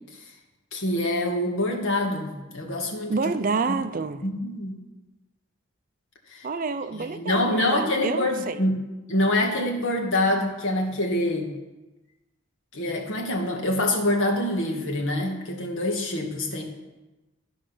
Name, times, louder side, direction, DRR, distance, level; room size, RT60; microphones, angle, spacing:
voice 1, 0.7-3.2 4.2-4.7 6.3-6.5 7.0-8.7 9.1-11.5 12.7-16.6, left 1 dB, 70° left, 1 dB, 1.9 m, -25 dB
voice 2, 3.1-4.2 6.4-8.6, right 4 dB, 40° right, 11 dB, 0.5 m, -28 dB
14.0 x 5.0 x 6.2 m, 1.1 s
head